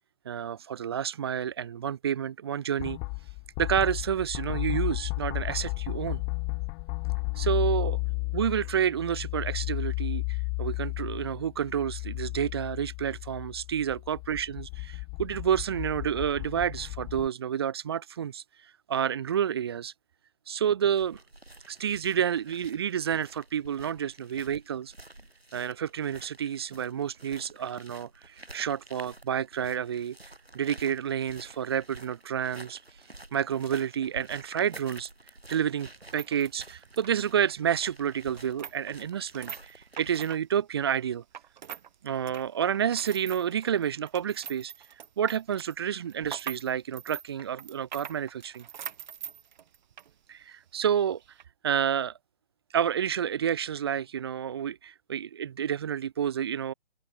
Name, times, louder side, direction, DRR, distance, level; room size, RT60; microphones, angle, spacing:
voice 1, 0.3-3.0 3.6-6.2 7.4-8.0 8.3-18.4 18.9-19.9 20.5-21.2 21.7-24.9 25.5-30.2 30.5-32.8 33.3-35.1 35.5-41.2 42.0-44.7 45.2-48.7 50.3-51.2 51.6-52.1 52.7-56.7, right 9 dB, 25° right, 0.4 m, -29 dB
sound 1, 2.8-17.3, left 40 dB or more, 20° left, 0.8 m, -33 dB
sound 2, 21.0-40.4, right 2 dB, 90° right, 3.9 m, -50 dB
sound 3, 35.9-41.9 42.2-50.1 50.4-50.5 51.2-51.4, right 9 dB, 50° right, 3.3 m, -44 dB
open air
figure-of-eight pair, 125°, 30 cm